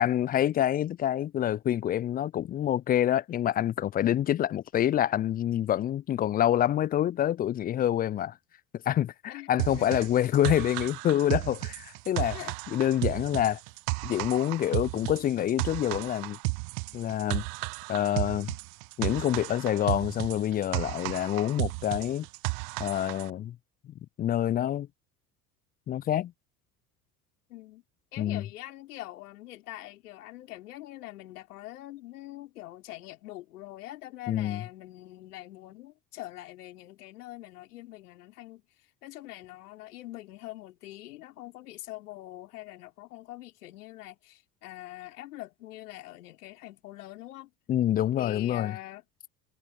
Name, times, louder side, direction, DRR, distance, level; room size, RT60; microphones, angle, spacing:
voice 1, 0.0-8.4 8.9-12.4 12.7-13.6 14.0-16.4 16.9-17.4 17.9-18.5 19.0-22.3 22.8-23.6 23.8-24.9 25.9-26.3 28.2-28.4 34.3-34.6 47.7-48.8, left 11 dB, 20° left, 0.4 m, -27 dB
voice 2, 9.3-10.1 12.3-12.5 27.5-27.8 28.1-47.5 48.2-49.0, left 16 dB, 70° left, 5.1 m, -44 dB
sound 1, 9.6-23.3, right 39 dB, 50° right, 0.5 m, -33 dB
figure-of-eight pair, 70°, 46 cm